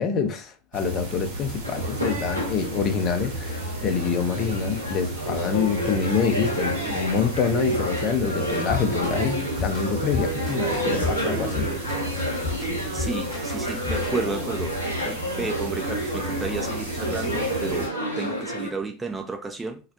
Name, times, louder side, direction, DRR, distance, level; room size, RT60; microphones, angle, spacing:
voice 1, 0.0-11.7, left 6 dB, 35° left, 0.5 m, -26 dB
sound 1, 0.7-17.9, right 2 dB, 70° right, 0.9 m, -34 dB
sound 2, 1.6-18.7, equal, 85° left, 0.6 m, -30 dB
sound 3, 8.7-14.3, left 5 dB, 20° left, 1.0 m, -33 dB
voice 2, 12.9-19.8, right 3 dB, 15° right, 0.4 m, -32 dB
2.3 x 2.0 x 2.7 m
figure-of-eight pair, 80°, 0 cm